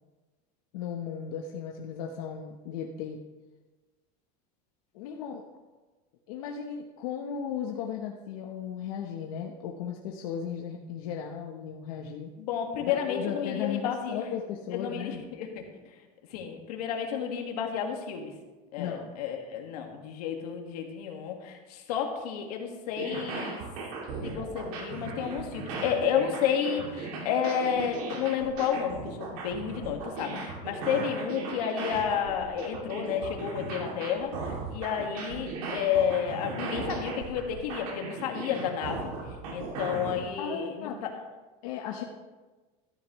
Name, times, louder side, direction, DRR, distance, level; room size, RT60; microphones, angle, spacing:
voice 1, 0.7-3.2 4.9-5.4 6.3-12.3 12.8-15.3 18.8-19.1 30.9-31.1 40.4-40.9 41.6-42.0, left 8 dB, 70° left, 1 dB, 1.0 m, -36 dB
voice 2, 12.4-14.2 14.7-15.6 16.3-18.3 18.7-23.6 24.2-39.1 39.5-41.1 42.0-42.1, left 8 dB, 90° left, 3 dB, 1.8 m, -31 dB
sound 1, 22.9-40.2, right 3 dB, 75° right, 2.5 m, -37 dB
13.0 x 10.0 x 3.1 m, 1.2 s
supercardioid pair, 170°, 19 cm